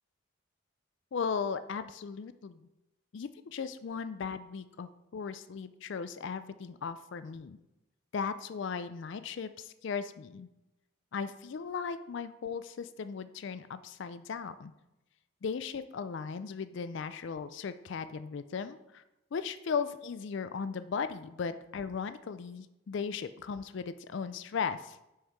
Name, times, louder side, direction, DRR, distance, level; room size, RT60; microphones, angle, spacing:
voice 1, 1.1-2.7 3.1-7.6 8.1-10.5 11.1-14.7 15.4-19.0 19.3-24.9, left 6 dB, 55° left, 12 dB, 0.4 m, -37 dB
6.4 x 5.4 x 4.6 m, 0.91 s
head